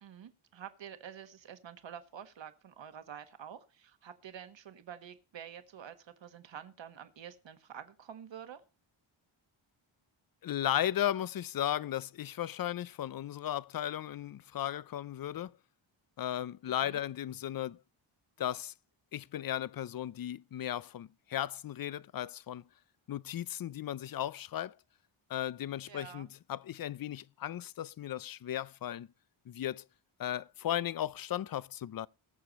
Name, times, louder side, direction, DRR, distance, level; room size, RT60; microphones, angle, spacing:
voice 1, 0.0-8.6 16.7-17.0 25.9-26.3, right 9 dB, 60° right, 1.5 m, -48 dB
voice 2, 10.4-15.5 16.2-17.8 18.4-18.7 19.1-22.6 23.1-24.7 25.3-29.1 29.5-29.8 30.2-32.1, left 11 dB, 45° left, 0.5 m, -36 dB
20.0 x 6.8 x 4.1 m
wide cardioid pair, 115°, 49 cm